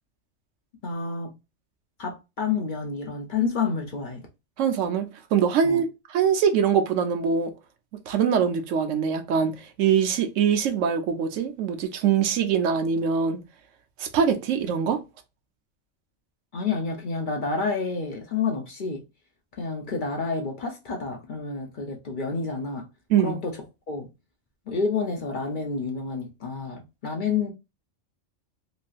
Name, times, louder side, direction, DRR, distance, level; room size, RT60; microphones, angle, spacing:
voice 1, 0.8-1.4 2.0-4.3 5.6-5.8 16.5-19.0 19.5-22.9 23.2-24.1 24.7-27.5, left 4 dB, 50° left, 0.7 m, -29 dB
voice 2, 4.6-5.9 6.1-7.5 8.1-13.4 14.0-15.0 23.1-23.4, right 7 dB, 85° right, 1.0 m, -23 dB
3.1 x 2.6 x 2.4 m
omnidirectional pair, 1.3 m